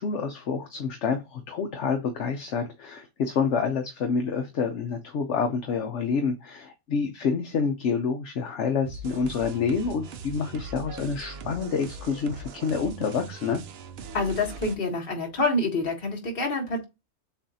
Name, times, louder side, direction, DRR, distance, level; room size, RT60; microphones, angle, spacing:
voice 1, 0.0-13.6, left 5 dB, 65° left, 1.0 m, -28 dB
sound 1, 8.8-14.8, right 3 dB, 60° right, 0.7 m, -40 dB
voice 2, 14.1-16.8, left 2 dB, 45° left, 1.5 m, -27 dB
7.0 x 2.5 x 2.7 m
omnidirectional pair, 1.4 m